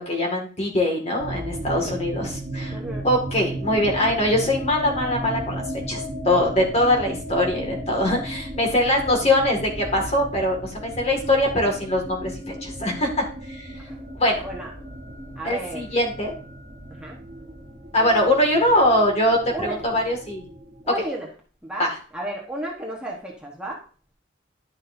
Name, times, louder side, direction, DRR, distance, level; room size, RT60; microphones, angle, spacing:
voice 1, 0.0-2.8 3.0-13.7 14.2-14.4 15.4-16.3 17.9-20.4 21.8-22.0, left 1 dB, 35° left, 0 dB, 2.1 m, -22 dB
sound 1, 1.2-21.0, right 1 dB, 45° right, 1.7 m, -35 dB
voice 2, 2.7-3.1 13.7-14.0 14.4-14.7 15.4-15.9 16.9-17.2 19.5-19.8 20.8-21.3 21.6-23.8, right 1 dB, 5° right, -2 dB, 1.2 m, -33 dB
11.0 x 6.4 x 2.7 m, 0.39 s
head